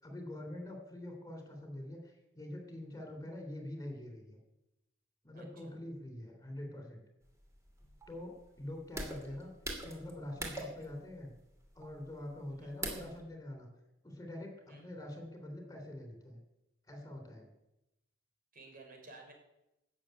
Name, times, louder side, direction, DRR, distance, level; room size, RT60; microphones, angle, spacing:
voice 1, 0.0-4.4 5.2-7.0 8.1-9.5 9.8-11.3 11.7-13.7 14.0-16.4 16.8-17.5, left 1 dB, 15° left, 4 dB, 3.6 m, -45 dB
voice 2, 5.3-5.8 12.5-12.7 14.7-14.9 18.5-19.3, right 2 dB, 45° right, 2 dB, 4.8 m, -54 dB
sound 1, 7.2-13.2, right 1 dB, 15° right, 2.7 m, -44 dB
13.5 x 7.3 x 9.3 m, 0.90 s
head